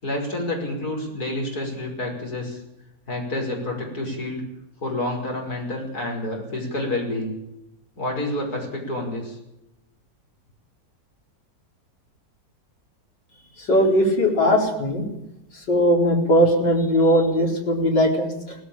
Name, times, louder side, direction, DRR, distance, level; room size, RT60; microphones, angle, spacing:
voice 1, 0.0-2.6 3.1-4.4 4.8-7.3 8.0-9.4, left 1 dB, 55° left, 0 dB, 6.1 m, -28 dB
voice 2, 13.6-15.1 15.5-18.6, equal, 80° left, 0 dB, 5.0 m, -19 dB
18.5 x 16.5 x 8.9 m, 0.87 s
omnidirectional pair, 1.9 m